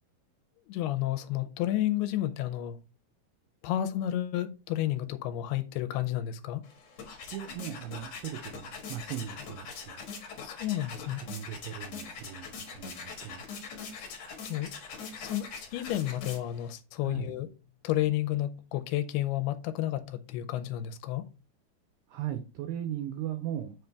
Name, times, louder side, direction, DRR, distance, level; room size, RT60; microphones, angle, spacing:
voice 1, 0.7-2.8 3.6-6.7 10.4-11.2 13.9-14.1 14.5-14.7 15.2-17.5 17.8-21.3, left 13 dB, 80° left, 2.5 m, -31 dB
sound 1, 6.6-16.7, left 5 dB, 60° left, 2.0 m, -43 dB
voice 2, 7.3-10.0 11.1-13.4 17.0-17.3 22.1-23.8, right 11 dB, 85° right, 1.9 m, -38 dB
7.5 x 3.9 x 3.4 m
omnidirectional pair, 4.7 m